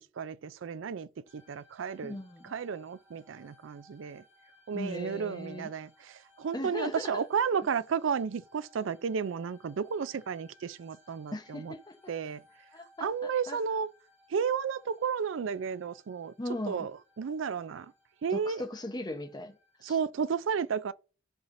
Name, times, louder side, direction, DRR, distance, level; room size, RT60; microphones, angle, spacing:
voice 1, 0.2-2.2 2.5-4.2 4.7-6.1 6.4-11.7 12.1-12.4 13.0-13.9 14.3-16.3 16.7-16.9 17.2-17.9 18.2-18.6 19.8-20.9, right 6 dB, 80° right, 0.4 m, -32 dB
sound 1, 1.3-20.1, left 2 dB, 10° right, 2.3 m, -63 dB
voice 2, 2.0-2.6 4.7-5.7 6.5-7.2 11.3-12.1 12.7-13.6 16.4-16.9 18.3-19.6 19.8-20.0, left 1 dB, 20° left, 0.9 m, -38 dB
13.5 x 5.6 x 2.6 m
head